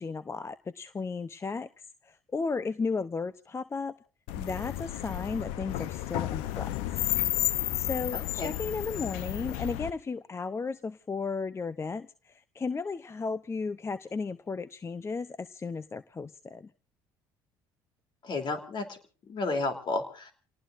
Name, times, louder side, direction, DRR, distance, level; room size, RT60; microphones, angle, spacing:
voice 1, 0.0-1.7 2.0-3.9 4.4-7.0 7.7-16.7, left 4 dB, 25° left, 14 dB, 0.7 m, -34 dB
sound 1, 4.3-9.9, left 14 dB, 80° left, 0.8 m, -32 dB
voice 2, 8.1-8.5 18.2-19.0 19.2-20.3, left 3 dB, 50° left, 6 dB, 3.2 m, -32 dB
29.0 x 18.5 x 2.6 m, 0.37 s
hypercardioid pair, 70°, 10 cm